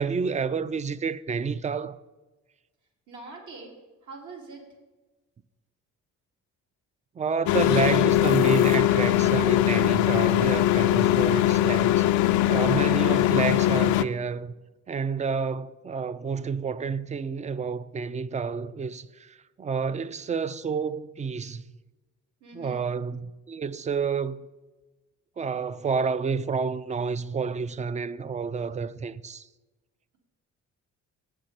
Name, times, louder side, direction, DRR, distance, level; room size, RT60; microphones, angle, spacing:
voice 1, 0.0-2.0 7.2-12.1 12.5-14.5 14.9-21.6 22.5-24.5 25.4-29.5, right 5 dB, 25° right, 0.4 m, -29 dB
voice 2, 3.1-4.7 10.8-11.3 22.4-22.9, right 3 dB, 75° right, 2.5 m, -44 dB
sound 1, 7.5-14.0, left 14 dB, 75° left, 0.5 m, -21 dB
9.0 x 6.6 x 5.8 m
cardioid pair, 90°, 30 cm